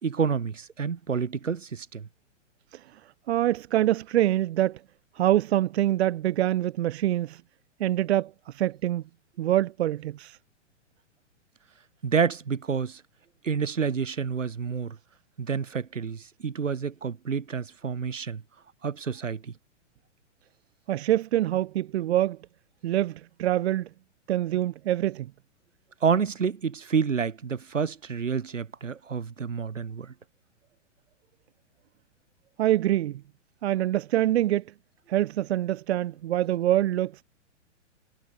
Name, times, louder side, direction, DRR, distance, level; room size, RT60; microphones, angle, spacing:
voice 1, 0.0-2.1 12.0-13.0 13.4-15.0 15.4-18.4 18.8-19.5 26.0-30.1, right 6 dB, 85° right, 6.0 m, -29 dB
voice 2, 3.3-4.8 5.1-7.4 7.8-9.0 9.4-10.4 20.9-22.4 22.8-23.9 24.3-25.3 32.6-33.2 33.6-34.6 35.1-37.2, right 13 dB, 60° right, 1.0 m, -25 dB
hypercardioid pair, 125°, 37 cm